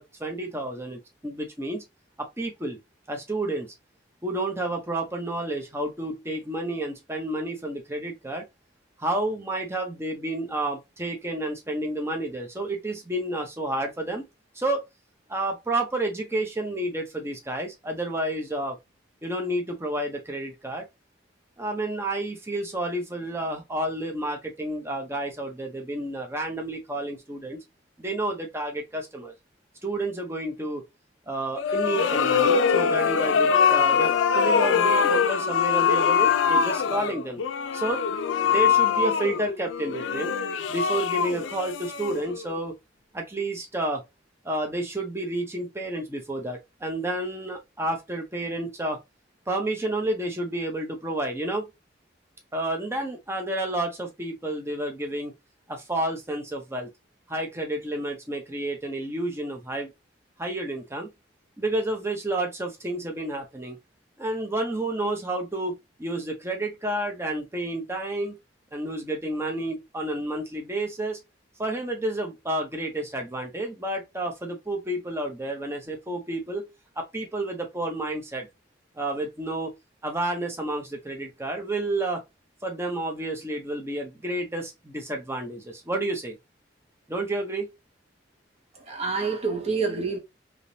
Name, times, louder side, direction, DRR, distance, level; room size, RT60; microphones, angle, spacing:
voice 1, 0.0-1.8 2.2-2.8 3.1-3.7 4.2-8.4 9.0-14.2 14.5-14.8 15.3-18.8 19.2-20.8 21.6-27.6 28.0-29.3 29.8-30.8 31.3-37.4 37.7-38.0 38.5-40.3 40.7-42.7 43.1-44.0 44.4-49.0 49.5-51.7 52.5-55.3 55.7-56.9 57.3-59.9 60.4-61.1 61.6-63.8 64.2-68.3 68.7-71.2 71.6-76.7 77.0-78.5 79.0-79.7 80.0-82.2 82.6-86.4 87.1-87.7, right 1 dB, 15° right, 0.8 m, -30 dB
sound 1, 31.5-42.5, left 6 dB, 85° left, 0.4 m, -23 dB
voice 2, 88.8-90.2, right 4 dB, 35° right, 1.0 m, -27 dB
3.6 x 3.0 x 2.7 m
head